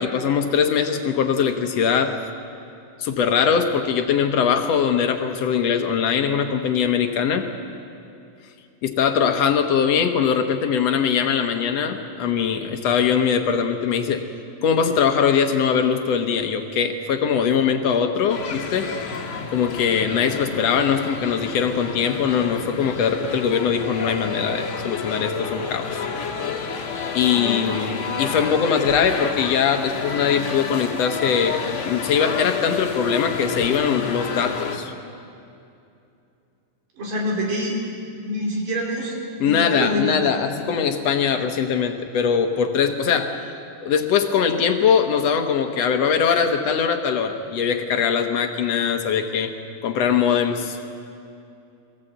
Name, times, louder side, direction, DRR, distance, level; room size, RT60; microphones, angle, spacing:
voice 1, 0.0-2.2 3.0-7.5 8.8-14.2 14.6-18.9 19.5-26.1 27.1-34.9 39.4-43.4 43.8-49.5 49.8-50.8, left 7 dB, 65° left, 6 dB, 1.9 m, -21 dB
sound 1, 18.3-34.8, left 5 dB, 45° left, 2.3 m, -30 dB
voice 2, 27.3-27.7 37.0-37.9 38.2-40.3, equal, 90° right, -1 dB, 5.1 m, -27 dB
22.5 x 15.5 x 8.1 m, 2.6 s
omnidirectional pair, 3.7 m